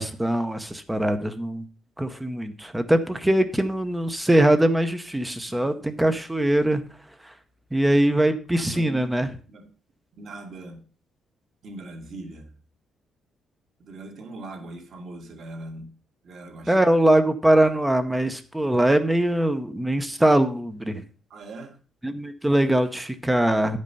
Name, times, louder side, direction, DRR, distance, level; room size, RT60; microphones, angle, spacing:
voice 1, 0.0-1.7 2.0-6.8 7.2-7.3 7.7-9.3 16.7-21.0 22.0-23.8, right 1 dB, 5° right, 0.7 m, -22 dB
voice 2, 5.5-5.8 8.5-9.1 9.5-9.7 10.2-10.9 11.6-12.5 13.8-15.9 16.2-16.8 21.3-21.8, right 2 dB, 50° right, 1.6 m, -40 dB
10.0 x 5.3 x 5.3 m
cardioid pair, 165°, 0 cm